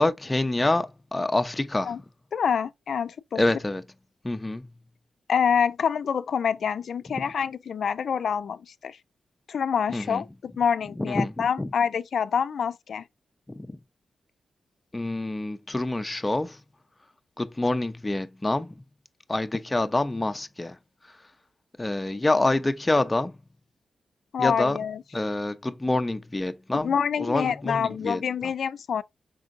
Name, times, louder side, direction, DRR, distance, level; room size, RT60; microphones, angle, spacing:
voice 1, 0.0-2.0 3.3-3.9 4.2-4.7 7.2-7.3 9.9-10.2 11.0-11.7 13.5-13.8 14.9-16.6 17.4-18.8 19.3-21.3 21.8-23.4 24.4-24.8 25.1-28.5, left 2 dB, 20° left, 0.6 m, -27 dB
voice 2, 2.3-3.4 5.3-9.0 9.5-13.0 24.3-25.0 26.7-29.0, left 7 dB, 75° left, 0.4 m, -26 dB
5.3 x 3.8 x 2.5 m
cardioid pair, 80°, 0 cm